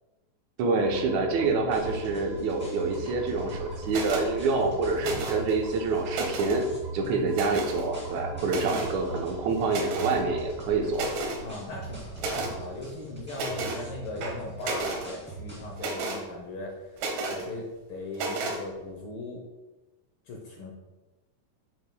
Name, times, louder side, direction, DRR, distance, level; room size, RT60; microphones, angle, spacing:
voice 1, 0.6-6.6 6.9-11.0, right 3 dB, 70° right, 2 dB, 2.1 m, -27 dB
sound 1, 0.8-10.5, right 2 dB, 50° right, 1.0 m, -42 dB
sound 2, 1.7-15.9, right 3 dB, 5° right, 1.6 m, -43 dB
sound 3, 3.9-4.3 5.0-5.5 6.0-6.6 7.3-7.8 8.5-8.9 9.7-10.2 10.6-10.7 10.9-11.4 12.2-12.5 13.3-13.8 14.2-15.1 15.8-16.2 17.0-17.4 18.1-18.6, right 3 dB, 90° right, 2.7 m, -32 dB
voice 2, 7.0-7.3 8.3-8.8 11.4-19.4 20.3-20.7, left 2 dB, 85° left, 0 dB, 1.1 m, -39 dB
8.1 x 6.7 x 2.2 m, 1.1 s
omnidirectional pair, 3.7 m